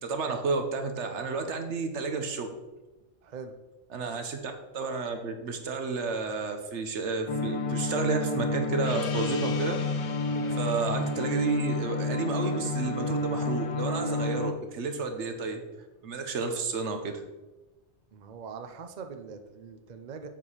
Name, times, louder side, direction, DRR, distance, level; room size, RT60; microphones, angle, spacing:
voice 1, 0.0-2.5 3.9-9.8 10.6-15.6 16.0-17.2, right 4 dB, 80° right, 6 dB, 1.3 m, -31 dB
voice 2, 3.2-3.5 4.0-4.2 10.3-10.6 18.1-20.3, right 5 dB, 45° right, 7 dB, 0.7 m, -42 dB
sound 1, 7.3-14.5, left 3 dB, 40° left, 0.5 m, -30 dB
Gong, 8.8-13.9, left 7 dB, 80° left, 1.0 m, -44 dB
7.4 x 4.9 x 5.6 m, 1.1 s
omnidirectional pair, 1.2 m